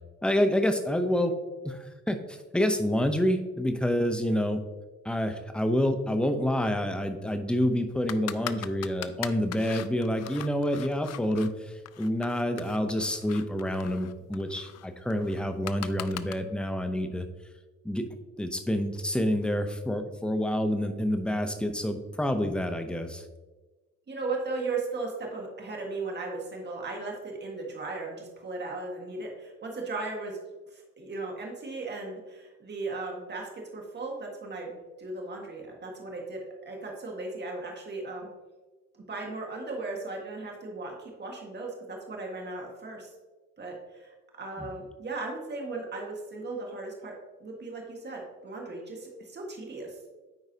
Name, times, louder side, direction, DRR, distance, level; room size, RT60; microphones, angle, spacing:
voice 1, 0.2-1.4 1.6-4.6 5.0-17.3 17.8-18.0 18.4-23.2 44.6-44.7, equal, 5° left, 7 dB, 0.7 m, -28 dB
sound 1, 8.1-11.5 11.9-16.3, left 13 dB, 60° left, 0.4 m, -40 dB
voice 2, 24.1-30.4 30.7-38.3 38.9-43.1 43.6-47.1 47.4-50.0, right 3 dB, 35° right, 0 dB, 1.7 m, -37 dB
9.1 x 4.6 x 2.8 m, 1.2 s
cardioid pair, 90°, 30 cm